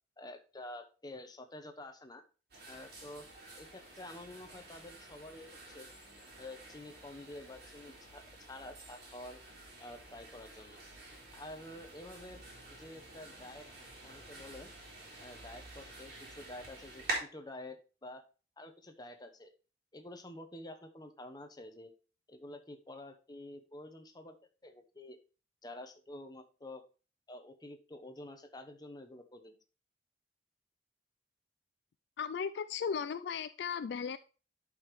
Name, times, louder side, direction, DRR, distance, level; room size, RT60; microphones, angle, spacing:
voice 1, 0.2-2.2 2.7-3.2 3.6-5.9 6.4-9.4 9.8-10.8 11.3-12.4 12.7-13.7 14.0-14.7 15.2-18.2 18.6-19.5 19.9-21.9 22.3-24.4 24.6-25.2 25.6-26.8 27.3-29.5, left 1 dB, 20° left, 6 dB, 0.9 m, -49 dB
sound 1, 2.5-17.2, right 2 dB, 55° right, 3.7 m, -48 dB
voice 2, 32.2-34.2, left 6 dB, 65° left, 13 dB, 0.3 m, -36 dB
11.5 x 5.1 x 3.1 m, 0.35 s
head